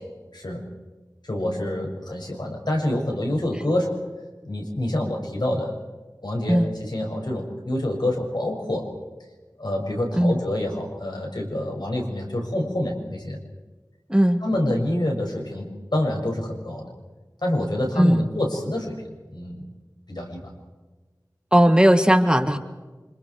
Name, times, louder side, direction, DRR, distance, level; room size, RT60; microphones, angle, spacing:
voice 1, 1.2-4.0 4.4-5.8 6.2-8.9 9.6-13.4 14.4-16.9 17.4-19.7 20.1-20.4, left 1 dB, 75° left, 0 dB, 6.8 m, -27 dB
voice 2, 14.1-14.4 18.0-18.3 21.5-22.6, equal, 10° right, 7 dB, 1.9 m, -17 dB
29.5 x 27.0 x 4.8 m, 1.3 s
wide cardioid pair, 45°, 7 cm